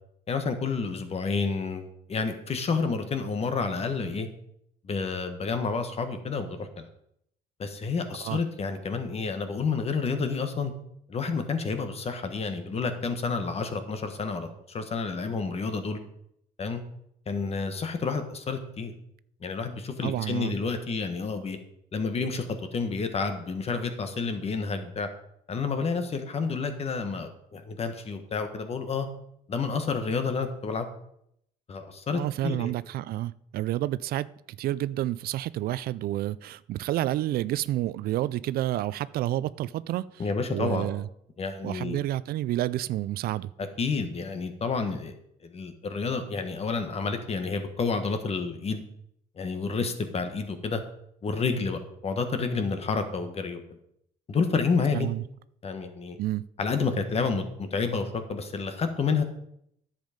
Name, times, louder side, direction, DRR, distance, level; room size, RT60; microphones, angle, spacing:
voice 1, 0.3-4.3 4.8-6.8 7.6-10.7 11.1-16.0 16.6-16.8 17.3-18.9 19.4-21.6 21.9-22.4 22.7-25.1 25.5-29.1 29.5-30.9 31.7-32.7 40.2-40.9 41.4-42.0 43.6-45.1 45.4-48.8 49.4-50.8 51.2-53.6 54.3-55.1 55.6-56.2 56.6-59.2, left 4 dB, 35° left, 8 dB, 1.5 m, -29 dB
voice 2, 20.0-20.5 32.1-34.3 34.6-40.2 40.5-41.1 41.6-43.5 54.9-55.2 56.2-56.5, right 14 dB, 65° right, 18 dB, 0.4 m, -29 dB
10.5 x 7.4 x 5.2 m, 0.74 s
cardioid pair, 110°, 17 cm